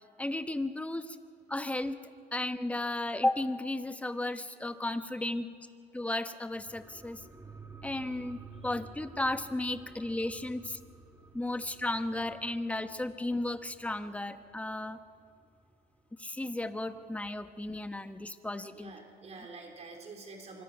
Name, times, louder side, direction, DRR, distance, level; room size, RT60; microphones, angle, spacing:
voice 1, 0.2-1.2 1.5-2.0 2.3-5.5 5.9-7.2 7.8-8.4 8.6-10.8 11.3-15.0 16.2-18.9, left 2 dB, 10° left, 9 dB, 1.1 m, -34 dB
sound 1, 6.5-15.6 15.9-16.0, right 3 dB, 15° right, 2.0 m, -52 dB
voice 2, 11.5-11.8 18.7-20.6, right 3 dB, 40° right, 2 dB, 4.0 m, -48 dB
25.0 x 22.0 x 5.8 m, 2.4 s
cardioid pair, 110°, 17 cm